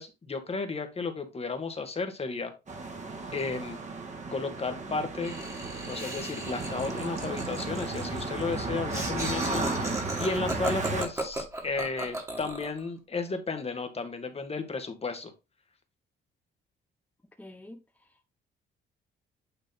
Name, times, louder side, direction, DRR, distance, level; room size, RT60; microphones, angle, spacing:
voice 1, 0.0-2.5 3.3-3.8 4.3-5.4 5.9-9.7 10.2-15.3, left 4 dB, 30° left, 1.6 m, -33 dB
sound 1, 2.7-11.0, right 3 dB, 35° right, 2.0 m, -34 dB
Laughter, 5.2-12.8, right 1 dB, 15° right, 2.1 m, -36 dB
voice 2, 17.4-18.4, left 1 dB, 10° left, 0.9 m, -49 dB
9.2 x 3.2 x 4.2 m
cardioid pair, 90°, 20 cm